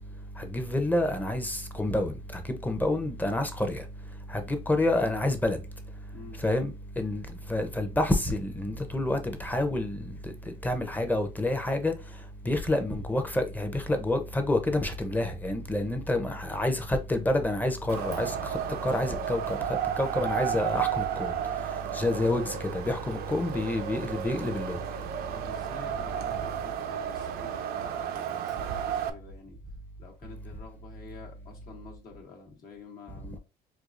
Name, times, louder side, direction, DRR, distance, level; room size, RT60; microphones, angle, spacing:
voice 1, 0.4-3.8 4.3-5.6 6.4-7.2 7.5-10.3 10.6-11.9 12.4-18.3 18.8-19.6 20.0-21.3 21.9-24.8, left 1 dB, 10° left, 0.7 m, -28 dB
Wind, 17.9-29.1, right 9 dB, 70° right, 0.5 m, -33 dB
voice 2, 25.3-29.6 30.0-33.4, left 4 dB, 60° left, 1.2 m, -48 dB
4.5 x 2.4 x 2.5 m
cardioid pair, 110°, 17 cm